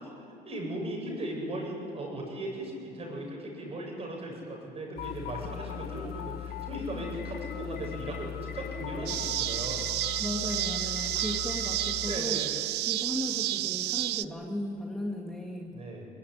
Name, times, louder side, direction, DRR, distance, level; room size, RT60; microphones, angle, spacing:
voice 1, 0.0-9.9 11.0-11.3 12.1-12.5 15.7-16.1, right 1 dB, 35° right, 0 dB, 8.0 m, -37 dB
sound 1, 5.0-12.2, left 10 dB, 70° left, 1.2 m, -39 dB
sound 2, 9.1-14.2, right 17 dB, 80° right, 0.6 m, -31 dB
voice 2, 10.2-12.4 12.9-15.7, left 1 dB, 5° left, -1 dB, 2.2 m, -36 dB
23.0 x 20.0 x 9.9 m, 2.6 s
cardioid pair, 110°, 17 cm